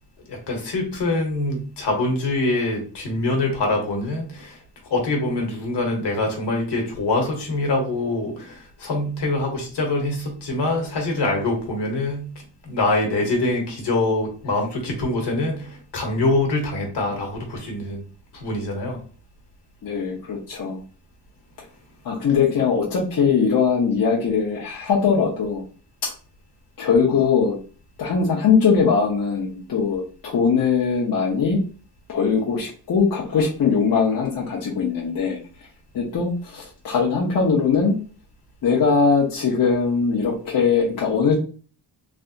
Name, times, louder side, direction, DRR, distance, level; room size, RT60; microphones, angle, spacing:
voice 1, 0.3-18.0 18.3-19.0, left 2 dB, 75° left, 1 dB, 1.2 m, -24 dB
voice 2, 19.8-20.8 22.0-25.6 26.0-26.1 26.8-27.6 28.0-31.6 32.1-35.4 35.9-38.0 38.6-41.3, left 5 dB, 55° left, -4 dB, 0.8 m, -21 dB
3.4 x 2.7 x 2.4 m, 0.38 s
wide cardioid pair, 145°, 42 cm